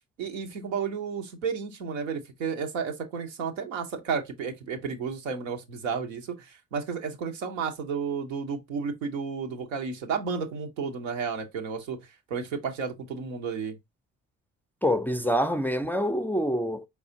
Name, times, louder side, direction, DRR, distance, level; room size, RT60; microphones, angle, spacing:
voice 1, 0.2-12.0 12.3-13.8, right 5 dB, 90° right, 0.8 m, -32 dB
voice 2, 14.8-16.9, equal, 5° left, 0.4 m, -26 dB
4.8 x 3.4 x 2.6 m
hypercardioid pair, 45°, 37 cm